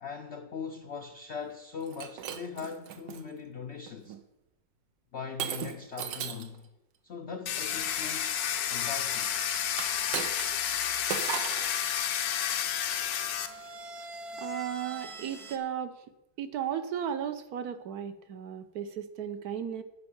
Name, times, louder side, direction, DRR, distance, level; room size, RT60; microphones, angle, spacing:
voice 1, 0.0-4.2 5.1-6.7 7.0-8.4 8.7-9.3, left 6 dB, 60° left, 0.7 m, -40 dB
Shatter, 1.8-3.2 3.9-4.2 5.4-6.6 9.7-10.7 11.1-11.7, right 9 dB, 85° right, 1.5 m, -36 dB
Domestic sounds home sounds, 7.5-13.5, left 9 dB, 85° left, 1.4 m, -31 dB
sound 1, 7.7-15.6, right 1 dB, 45° right, 0.9 m, -46 dB
voice 2, 14.4-16.0 16.4-19.8, right 9 dB, 65° right, 1.2 m, -35 dB
9.8 x 5.4 x 7.2 m
omnidirectional pair, 1.9 m